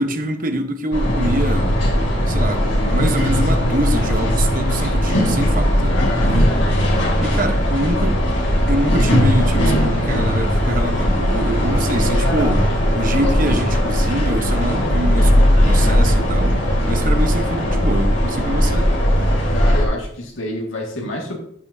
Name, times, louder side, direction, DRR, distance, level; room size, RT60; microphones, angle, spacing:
voice 1, 0.0-1.7 2.3-5.9 6.2-6.5 7.2-8.3 8.7-18.9, right 1 dB, 45° right, 1.0 m, -25 dB
sound 1, 0.9-19.9, equal, 70° left, 2.6 m, -18 dB
voice 2, 5.9-6.5 19.5-21.4, left 1 dB, 85° left, 1.9 m, -28 dB
15.5 x 5.9 x 2.7 m
head